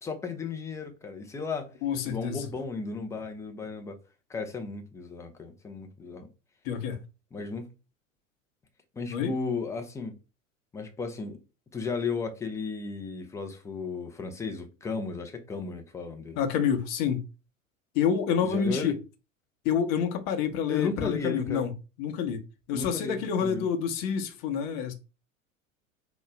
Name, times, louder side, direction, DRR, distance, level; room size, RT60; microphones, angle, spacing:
voice 1, 0.0-1.7 2.0-4.0 4.3-6.3 7.3-7.7 8.9-10.2 10.7-11.4 11.7-16.4 18.4-19.0 20.7-21.7 22.7-23.7, left 4 dB, 10° left, 0.4 m, -34 dB
voice 2, 1.8-2.5 6.6-7.0 9.1-9.3 16.4-17.2 17.9-19.0 19.6-21.7 22.0-22.4 22.7-24.9, left 7 dB, 40° left, 0.8 m, -28 dB
3.9 x 2.1 x 3.2 m
figure-of-eight pair, 85°, 40 cm